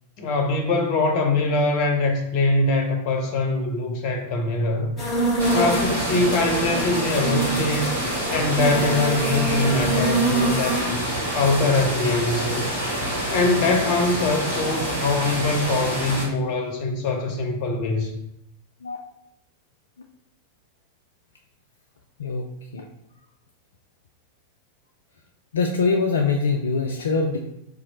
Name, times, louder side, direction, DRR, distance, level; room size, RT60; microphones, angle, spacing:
voice 1, 0.2-5.0 5.5-8.0 8.3-11.0 11.3-12.7 13.3-18.1, left 2 dB, 45° left, 3 dB, 0.7 m, -23 dB
sound 1, 5.0-10.8, right 2 dB, 20° left, 1.4 m, -25 dB
sound 2, 5.4-16.3, right 1 dB, 75° right, 1.3 m, -27 dB
voice 2, 22.2-22.9 25.5-27.4, left 4 dB, 65° left, 2 dB, 0.3 m, -23 dB
2.9 x 2.4 x 4.1 m, 0.79 s
figure-of-eight pair, 90°, 0 cm